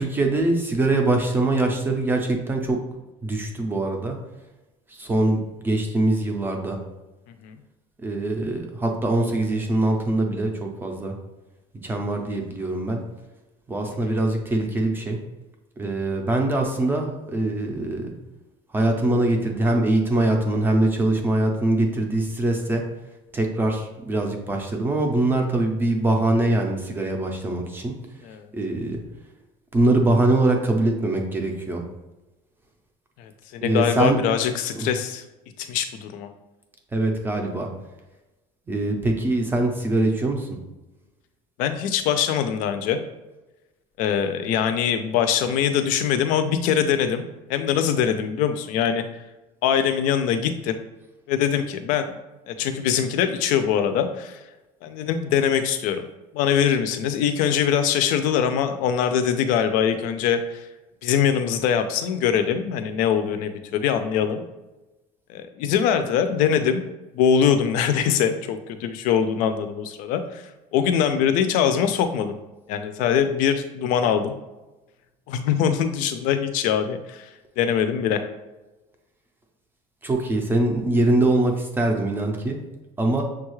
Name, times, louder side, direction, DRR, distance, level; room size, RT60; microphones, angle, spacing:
voice 1, 0.0-2.8 3.2-4.2 4.9-6.8 8.0-11.1 11.8-13.0 13.7-15.2 15.8-18.1 18.7-22.8 23.3-27.9 28.5-29.0 29.7-31.8 33.6-34.2 34.7-34.9 36.9-37.7 38.7-40.5 80.0-82.6 83.0-83.2, right 2 dB, 15° right, 2 dB, 0.5 m, -23 dB
voice 2, 33.2-35.2 35.6-36.3 41.6-43.0 44.0-47.2 47.5-49.1 49.6-50.8 51.3-52.2 52.5-54.4 54.8-56.0 56.3-60.6 61.0-64.4 65.3-66.8 67.1-72.3 72.7-74.3 75.3-77.3 77.6-78.3, left 8 dB, 65° left, 9 dB, 0.5 m, -23 dB
6.3 x 2.3 x 3.1 m, 1.1 s
cardioid pair, 165°, 15 cm